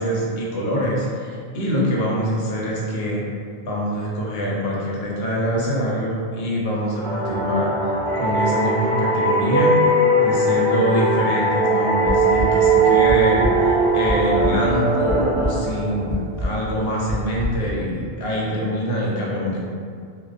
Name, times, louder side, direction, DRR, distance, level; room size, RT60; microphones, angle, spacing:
voice 1, 0.0-3.2 3.7-7.7 8.2-9.8 10.2-19.6, equal, 65° left, -4 dB, 0.8 m, -24 dB
sound 1, 7.0-16.4, right 2 dB, 65° right, 0.9 m, -20 dB
sound 2, 12.1-12.5 13.1-13.5 13.9-14.5 15.1-15.5 16.1-16.5 17.1-17.5, left 1 dB, 5° left, 0.9 m, -24 dB
2.4 x 2.2 x 2.4 m, 2.2 s
omnidirectional pair, 1.2 m